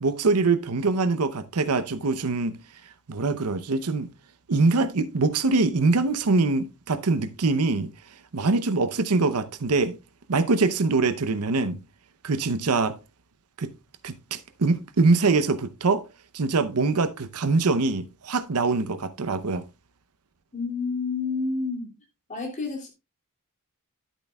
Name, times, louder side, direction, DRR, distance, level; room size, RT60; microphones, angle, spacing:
voice 1, 0.0-2.5 3.1-4.1 4.5-7.9 8.3-10.0 10.3-11.8 12.2-13.0 13.6-13.7 14.0-16.0 16.3-19.6, right 3 dB, 85° right, 0.8 m, -23 dB
voice 2, 20.5-21.9 22.3-22.9, left 4 dB, 35° left, 2.7 m, -29 dB
10.5 x 8.9 x 2.3 m
head